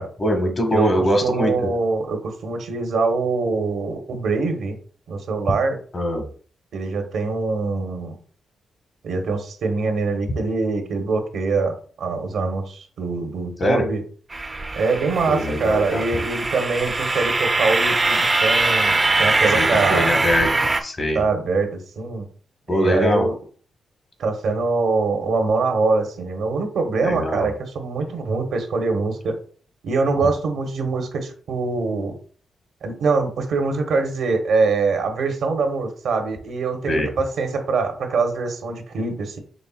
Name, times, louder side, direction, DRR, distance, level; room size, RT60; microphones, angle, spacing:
voice 1, 0.2-1.7 5.9-6.3 13.6-13.8 15.3-16.0 19.5-21.2 22.7-23.3 27.0-27.5 36.9-37.1, equal, 40° left, 3 dB, 1.4 m, -22 dB
voice 2, 1.2-4.8 5.1-5.8 6.7-8.2 9.0-14.0 14.7-20.1 21.1-22.2 22.7-23.3 24.2-29.4 29.8-32.2 32.8-39.4, right 4 dB, 75° right, 4 dB, 1.0 m, -23 dB
sound 1, 14.3-20.8, right 3 dB, 30° right, 0.6 m, -22 dB
5.3 x 3.3 x 2.4 m, 0.43 s
cardioid pair, 70°, 0 cm